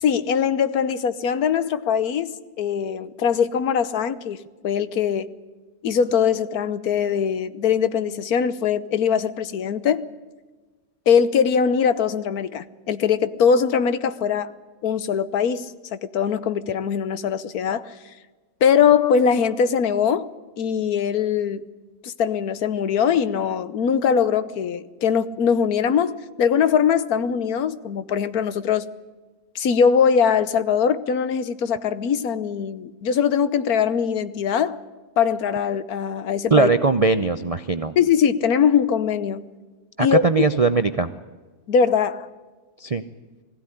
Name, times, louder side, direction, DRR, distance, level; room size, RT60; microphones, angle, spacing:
voice 1, 0.0-4.4 4.6-5.3 5.8-10.1 11.1-14.5 14.8-15.7 16.1-17.9 18.6-20.3 20.6-21.7 22.0-28.9 29.5-34.8 35.2-36.7 38.0-39.4 40.0-40.2 41.7-42.3, left 7 dB, 70° left, 1.4 m, -21 dB
voice 2, 36.5-37.9 40.0-41.1 42.8-43.0, right 4 dB, 45° right, 0.4 m, -20 dB
21.0 x 16.0 x 10.0 m
omnidirectional pair, 1.6 m